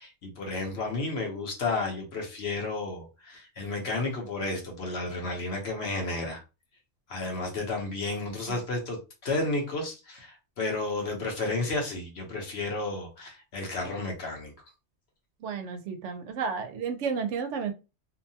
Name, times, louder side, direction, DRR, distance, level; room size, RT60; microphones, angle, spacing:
voice 1, 0.0-6.4 7.1-14.5, left 2 dB, 60° left, 1.0 m, -32 dB
voice 2, 15.4-17.7, right 6 dB, 75° right, 0.9 m, -32 dB
2.8 x 2.2 x 2.7 m
omnidirectional pair, 1.3 m